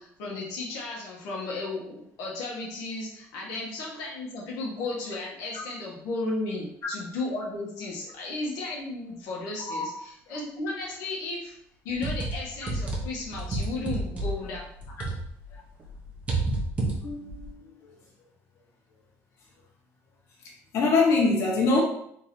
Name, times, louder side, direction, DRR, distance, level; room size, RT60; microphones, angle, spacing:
voice 1, 0.0-11.5 11.8-14.7, left 2 dB, 80° left, -4 dB, 1.3 m, -34 dB
sound 1, 11.9-15.5 15.8-17.5, right 2 dB, 20° right, 0.9 m, -30 dB
voice 2, 16.9-17.6 20.7-21.8, left 3 dB, 50° left, -3 dB, 1.4 m, -23 dB
3.7 x 3.0 x 4.3 m, 0.71 s
cardioid pair, 145°, 6 cm